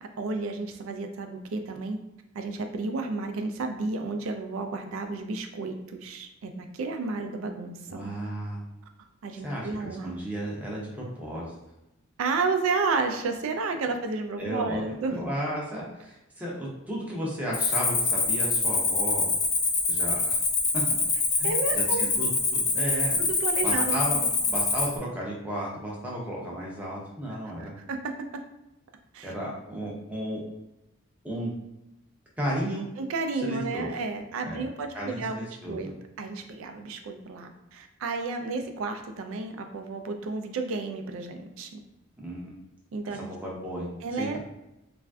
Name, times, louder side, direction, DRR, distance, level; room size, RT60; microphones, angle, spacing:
voice 1, 0.2-2.0 2.3-8.1 9.2-10.1 12.2-15.3 21.4-22.1 23.2-24.3 27.6-28.1 29.1-29.3 33.0-41.8 42.9-43.3 44.0-44.4, right 3 dB, 70° right, 6 dB, 0.4 m, -32 dB
voice 2, 7.9-8.6 9.4-11.5 14.4-14.8 15.1-19.3 19.9-20.4 20.7-20.8 21.4-23.2 23.6-24.2 24.5-27.8 29.2-30.4 31.2-31.5 32.4-32.8 33.4-33.9 34.4-34.7 34.9-35.9 42.2-42.6 43.1-44.4, equal, 5° right, -4 dB, 0.6 m, -34 dB
Cricket, 17.5-25.0, left 3 dB, 45° left, 0.6 m, -25 dB
3.2 x 2.5 x 2.3 m, 0.91 s
head